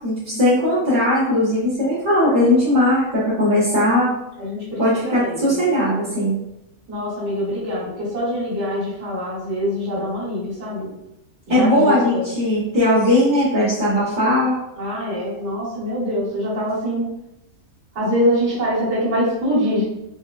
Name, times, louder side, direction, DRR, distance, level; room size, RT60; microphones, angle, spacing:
voice 1, 0.0-4.1 4.8-6.4 11.5-14.6, left 1 dB, 35° right, -11 dB, 0.9 m, -18 dB
voice 2, 4.4-5.6 6.9-10.9 11.5-12.3 14.8-17.1 17.9-19.8, equal, 55° right, -9 dB, 1.9 m, -24 dB
4.4 x 2.1 x 2.3 m, 0.87 s
omnidirectional pair, 1.6 m